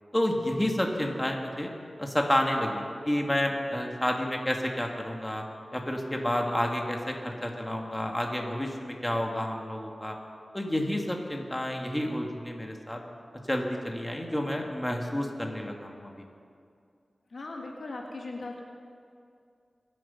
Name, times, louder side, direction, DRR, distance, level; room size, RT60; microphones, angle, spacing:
voice 1, 0.1-1.7 2.0-5.4 5.7-10.2 10.5-13.0 13.5-16.3, left 1 dB, 15° left, 1 dB, 2.0 m, -30 dB
voice 2, 17.3-18.6, left 2 dB, 75° left, 0 dB, 1.8 m, -38 dB
22.5 x 7.7 x 5.7 m, 2.4 s
cardioid pair, 50°, 0 cm